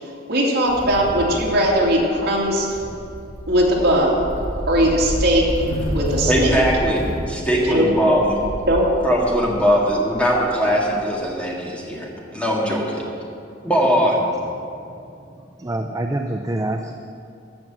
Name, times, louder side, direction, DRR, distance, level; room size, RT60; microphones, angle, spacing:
voice 1, 0.3-2.7 3.5-4.2 4.7-5.5 5.9-6.6 7.6-7.9 8.7-8.8, equal, 55° right, -3 dB, 2.6 m, -19 dB
sound 1, 0.7-10.9, equal, 35° left, 3.3 m, -30 dB
voice 2, 6.3-7.0 7.3-8.4 9.0-13.0 13.6-14.2, equal, 5° left, -3 dB, 1.9 m, -20 dB
voice 3, 14.7-16.9, right 1 dB, 15° right, 4 dB, 0.5 m, -28 dB
14.5 x 6.1 x 7.7 m, 2.5 s
head